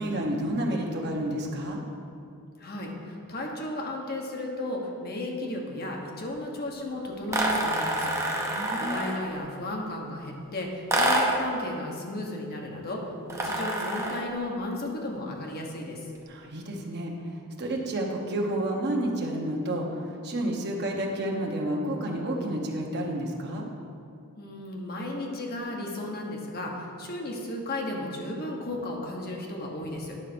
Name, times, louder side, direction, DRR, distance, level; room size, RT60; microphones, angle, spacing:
voice 1, 0.0-1.8 8.5-9.0 16.3-23.7, right 1 dB, 50° right, 0 dB, 1.1 m, -30 dB
voice 2, 2.6-16.0 24.4-30.1, left 1 dB, 45° left, 0 dB, 1.2 m, -34 dB
sound 1, 7.3-9.3 10.9-11.5 13.3-14.3, right 1 dB, 15° right, 0.8 m, -27 dB
10.0 x 4.0 x 6.1 m, 2.5 s
head